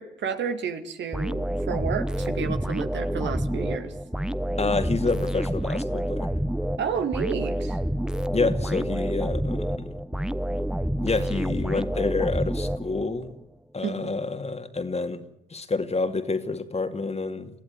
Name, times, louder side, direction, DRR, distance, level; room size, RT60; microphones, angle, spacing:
voice 1, 0.0-3.9 6.8-7.8 13.8-14.2, right 6 dB, 65° right, 8 dB, 2.2 m, -31 dB
sound 1, 1.1-13.3, right 1 dB, 5° right, 1.1 m, -28 dB
voice 2, 4.6-6.3 8.3-10.0 11.0-13.4 13.7-15.2 15.5-17.5, left 3 dB, 30° left, 8 dB, 2.5 m, -28 dB
25.0 x 15.0 x 9.9 m, 0.80 s
hypercardioid pair, 40°, 20 cm